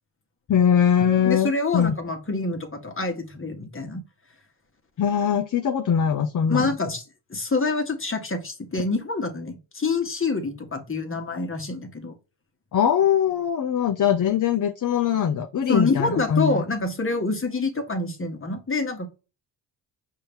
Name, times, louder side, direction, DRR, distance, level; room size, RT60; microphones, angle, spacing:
voice 1, 0.5-2.0 5.0-6.7 12.7-16.6, left 8 dB, 45° left, 0.6 m, -22 dB
voice 2, 1.2-4.0 6.5-7.0 7.3-12.1 15.7-19.1, left 3 dB, 25° left, 1.4 m, -26 dB
5.4 x 2.8 x 3.5 m
supercardioid pair, 55°, 46 cm